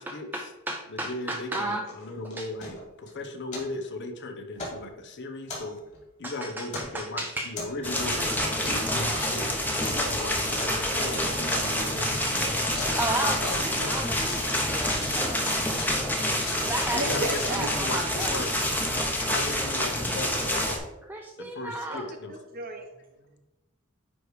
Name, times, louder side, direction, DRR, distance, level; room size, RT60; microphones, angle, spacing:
voice 1, 0.0-1.9 2.4-2.5 6.2-7.5 8.2-8.3 13.0-14.4 14.7-17.0 17.4-18.4 19.2-19.3 19.6-19.7 21.1-22.1, right 1 dB, 10° right, 2 dB, 0.4 m, -34 dB
voice 2, 0.9-5.8 6.2-12.5 13.2-13.9 16.9-18.6 18.9-20.8 21.4-22.3, left 2 dB, 55° left, 5 dB, 0.9 m, -37 dB
sound 1, 1.8-3.1 3.5-3.7 4.5-4.8 5.4-6.0 6.7-7.0 7.5-8.0 8.6-8.9 9.1-9.4 9.8-10.0 10.6-10.8 11.1-11.2 11.5-11.6 12.2-13.0 13.3-14.5 14.8-16.0 16.3-18.7, left 2 dB, 35° left, 2.5 m, -39 dB
sound 2, 7.8-20.8, left 1 dB, 10° left, 1.0 m, -27 dB
voice 3, 17.0-17.7 21.9-22.0 22.3-23.4, right 1 dB, 45° right, 5 dB, 1.0 m, -35 dB
9.7 x 3.3 x 4.8 m, 1.0 s
head